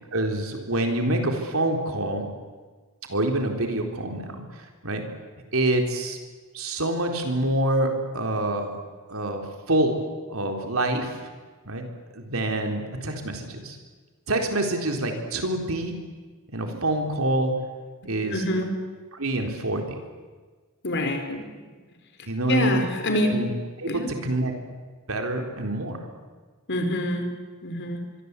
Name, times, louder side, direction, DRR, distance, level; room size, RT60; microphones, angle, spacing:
voice 1, 0.1-2.3 3.1-5.1 5.5-6.2 6.5-8.8 9.1-11.2 11.6-11.9 12.1-13.8 14.3-16.0 16.5-17.5 18.0-18.4 19.1-20.0 22.3-22.8 23.1-23.5 23.8-24.5 25.1-26.0, right 1 dB, 70° right, 3 dB, 4.1 m, -26 dB
voice 2, 18.3-18.7 20.8-21.6 22.5-23.4 23.9-24.1 26.7-27.3 27.6-28.0, left 1 dB, 55° left, 5 dB, 4.3 m, -26 dB
24.5 x 24.0 x 8.4 m, 1.4 s
head